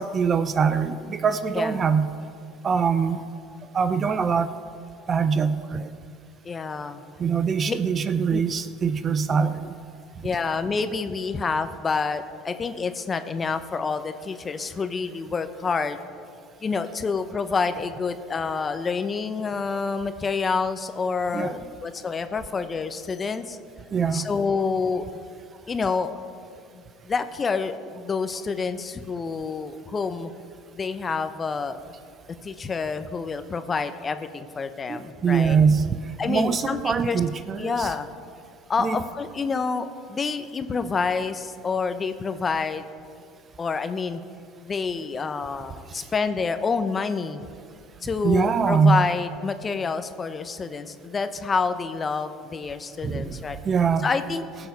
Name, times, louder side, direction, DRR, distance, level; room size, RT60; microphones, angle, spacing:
voice 1, 0.0-2.1 2.6-3.2 3.7-4.5 5.1-5.9 7.2-9.8 21.3-21.6 23.9-24.3 34.9-36.0 36.3-37.9 38.8-39.0 45.9-46.0 48.2-49.1 53.0-54.1, right 6 dB, 35° right, 11 dB, 0.7 m, -23 dB
voice 2, 1.5-1.9 6.4-7.0 7.7-7.8 8.3-8.4 10.2-16.0 16.6-23.6 24.1-25.1 25.7-26.2 26.7-30.3 30.7-31.8 32.4-35.6 36.2-37.2 37.6-38.1 38.7-42.8 43.6-44.2 44.6-47.5 48.0-53.6 54.0-54.4, left 4 dB, 30° left, 10 dB, 0.8 m, -28 dB
18.5 x 7.1 x 5.4 m, 2.3 s
hypercardioid pair, 85°, 0 cm